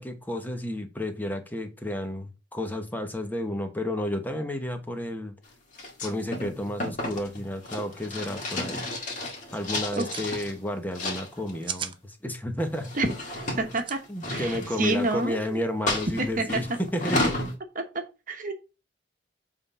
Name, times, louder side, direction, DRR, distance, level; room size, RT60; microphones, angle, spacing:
voice 1, 0.0-5.3 6.0-8.9 9.5-12.9 14.1-17.4, left 1 dB, 10° left, 1.1 m, -31 dB
sound 1, 5.7-10.5 10.9-11.6 12.6-15.3 15.9-17.5, left 1 dB, 45° left, 2.1 m, -32 dB
sound 2, 8.2-8.3 8.6-8.9 9.7-10.3 11.4-12.0 13.7-14.0, right 7 dB, 30° right, 0.6 m, -36 dB
voice 2, 13.6-14.0 14.3-15.6 16.2-16.6 17.7-17.8 18.3-18.5, right 2 dB, 45° right, 1.2 m, -28 dB
7.8 x 3.7 x 5.5 m
head